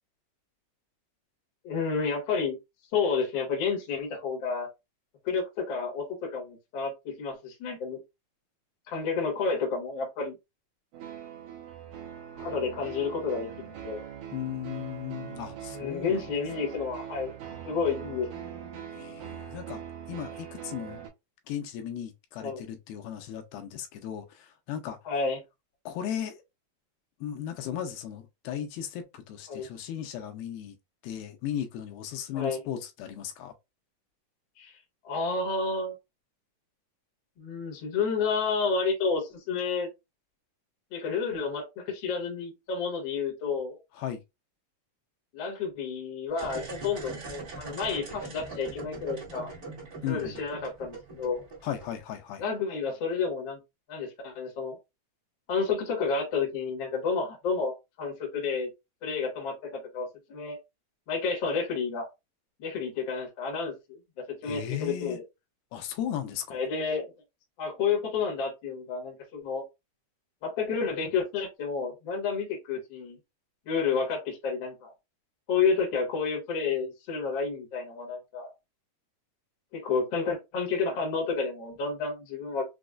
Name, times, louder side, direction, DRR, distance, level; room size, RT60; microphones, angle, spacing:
voice 1, 1.6-2.6 2.9-4.7 5.2-8.0 8.9-10.4 12.3-13.5 13.8-14.0 15.7-17.3 17.6-18.4 22.4-22.6 25.0-25.4 29.5-29.7 32.3-32.6 34.6-34.8 35.0-35.9 37.4-39.9 40.9-43.8 45.3-49.5 50.1-51.4 52.4-53.6 53.9-54.8 55.5-58.7 59.0-60.6 61.1-62.1 62.6-64.0 64.4-65.2 66.5-67.1 67.6-69.6 70.4-73.2 73.6-74.9 75.5-78.5 79.7-82.6, left 5 dB, 65° left, 1.2 m, -30 dB
sound 1, 10.9-21.1, right 9 dB, 70° right, 1.9 m, -42 dB
voice 2, 14.3-16.4 18.9-19.8 20.1-21.0 21.5-25.0 25.9-26.4 27.2-30.8 31.0-33.5 43.9-44.2 50.0-50.4 51.6-52.4 64.4-65.2 65.7-66.6, left 10 dB, 85° left, 2.4 m, -36 dB
sound 2, 46.3-52.1, right 3 dB, 50° right, 1.0 m, -41 dB
6.0 x 2.1 x 2.4 m
omnidirectional pair, 4.4 m